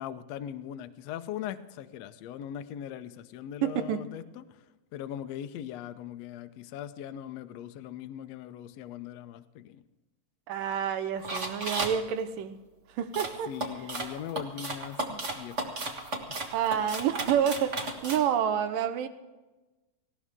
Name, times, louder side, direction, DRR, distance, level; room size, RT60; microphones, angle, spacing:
voice 1, 0.0-4.6 4.9-9.8 13.5-15.9, left 10 dB, 80° left, 10 dB, 1.5 m, -40 dB
voice 2, 3.6-4.1 10.5-12.6 13.0-13.5 15.1-15.2 16.5-19.1, right 9 dB, 80° right, 11 dB, 2.6 m, -28 dB
sound 1, 11.2-12.0 13.1-18.2, right 2 dB, 45° right, 0.9 m, -34 dB
18.5 x 17.0 x 3.7 m, 1.1 s
omnidirectional pair, 3.9 m